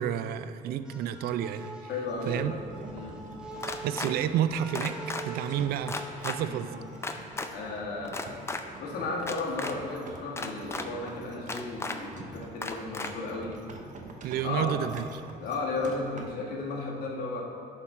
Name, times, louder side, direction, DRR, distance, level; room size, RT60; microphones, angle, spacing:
voice 1, 0.0-1.9 2.2-2.5 3.8-6.7 14.2-15.1, right 10 dB, 65° right, 12 dB, 0.4 m, -30 dB
sound 1, 0.8-7.5, right 2 dB, 5° right, 0.8 m, -44 dB
voice 2, 1.9-2.5 2.9-3.2 6.4-6.7 7.5-8.2 8.8-13.5 14.4-14.7 15.4-17.4, left 3 dB, 65° left, -2 dB, 1.5 m, -34 dB
sound 2, 2.0-16.3, right 3 dB, 50° right, 0.8 m, -47 dB
sound 3, 3.6-4.1 4.7-5.2 5.9-6.4 7.0-7.5 8.1-8.6 9.2-9.7 10.4-10.8 11.5-12.0 12.6-13.1, left 3 dB, 15° left, 0.4 m, -34 dB
11.0 x 3.7 x 4.2 m, 2.6 s
cardioid pair, 110°, 17 cm